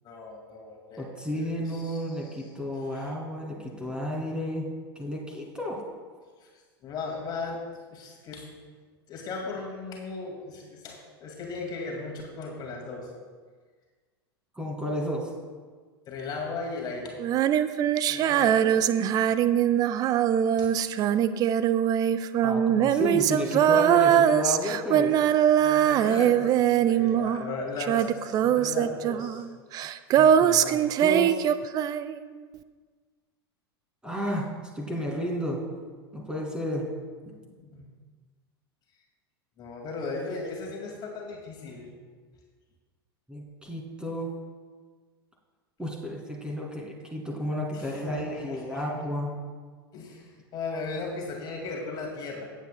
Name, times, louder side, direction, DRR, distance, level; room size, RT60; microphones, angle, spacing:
voice 1, 0.0-2.5 2.9-3.1 6.4-7.6 7.9-8.5 9.1-13.1 16.1-17.1 18.1-18.9 20.6-20.7 25.6-29.4 37.6-37.8 39.6-41.9 47.7-48.8 49.9-52.5, left 3 dB, 30° left, -1 dB, 2.1 m, -37 dB
voice 2, 1.0-4.7 5.0-5.8 14.6-15.3 22.4-25.2 30.2-31.4 34.0-34.5 34.7-35.6 36.1-36.8 37.3-37.4 43.3-44.3 45.8-49.3, left 1 dB, 5° right, -2 dB, 2.3 m, -32 dB
Female singing, 17.2-27.5 27.8-32.2, right 10 dB, 30° right, 0.4 m, -22 dB
17.5 x 8.3 x 2.2 m, 1.5 s
figure-of-eight pair, 85°, 13 cm